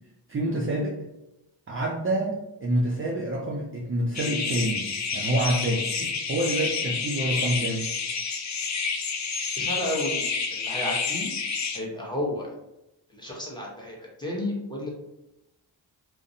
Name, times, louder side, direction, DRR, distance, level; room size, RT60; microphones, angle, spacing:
voice 1, 0.3-1.0 1.7-5.9 6.3-7.8, right 1 dB, 30° right, -2 dB, 0.4 m, -27 dB
sound 1, 4.1-11.8, left 5 dB, 40° left, 0.4 m, -29 dB
voice 2, 9.6-11.3 11.7-12.5 13.1-14.9, left 1 dB, 10° left, -3 dB, 0.9 m, -32 dB
2.5 x 2.1 x 2.7 m, 0.90 s
cardioid pair, 45°, 48 cm